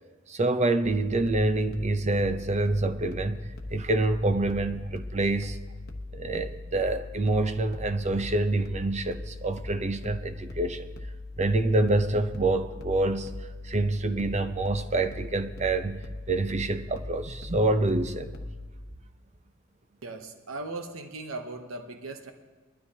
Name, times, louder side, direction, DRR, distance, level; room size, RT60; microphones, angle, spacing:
voice 1, 0.3-3.4 3.7-5.6 6.1-10.9 11.4-13.3 13.6-16.0 16.3-18.4, right 2 dB, 35° right, 10 dB, 0.7 m, -26 dB
sound 1, 0.8-18.7, left 2 dB, 50° left, 1.0 m, -40 dB
voice 2, 20.0-22.3, right 2 dB, 75° right, 6 dB, 0.9 m, -38 dB
21.5 x 12.5 x 2.8 m, 1.3 s
head